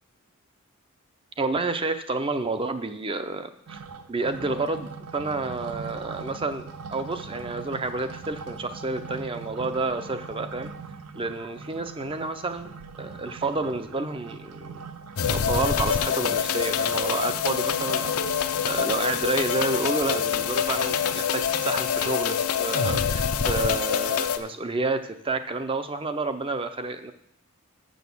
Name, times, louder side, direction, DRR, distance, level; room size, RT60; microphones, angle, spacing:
voice 1, 1.4-3.8 4.1-10.7 11.1-12.7 13.0-14.8 15.3-18.2 18.6-27.1, right 3 dB, 25° right, 9 dB, 0.6 m, -30 dB
sound 1, 3.7-21.8, right 5 dB, 85° right, 0.6 m, -42 dB
sound 2, 15.2-24.4, left 8 dB, 85° left, 0.6 m, -25 dB
6.9 x 6.3 x 7.0 m, 0.71 s
head